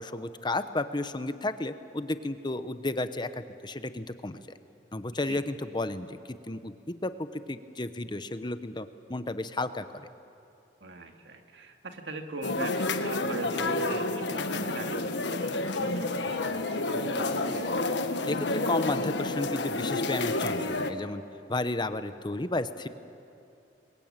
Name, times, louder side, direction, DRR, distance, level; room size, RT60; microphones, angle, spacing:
voice 1, 0.0-4.6 4.9-10.1 18.3-21.2 21.5-22.9, left 2 dB, 25° left, 11 dB, 0.9 m, -33 dB
voice 2, 10.8-17.8, right 2 dB, 85° right, 4 dB, 2.3 m, -40 dB
sound 1, 12.4-20.9, left 2 dB, 85° left, 1.5 m, -30 dB
26.5 x 22.5 x 9.0 m, 2.7 s
head